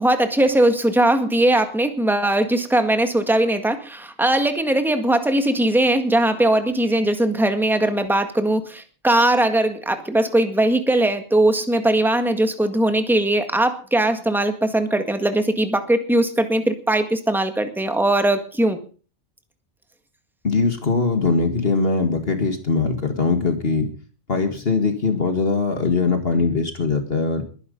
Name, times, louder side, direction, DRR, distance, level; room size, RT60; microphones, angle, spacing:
voice 1, 0.0-18.8, right 1 dB, ahead, 7 dB, 1.8 m, -20 dB
voice 2, 20.4-23.9 24.3-27.4, left 4 dB, 55° left, 6 dB, 2.1 m, -21 dB
21.0 x 10.5 x 5.3 m, 0.40 s
omnidirectional pair, 1.2 m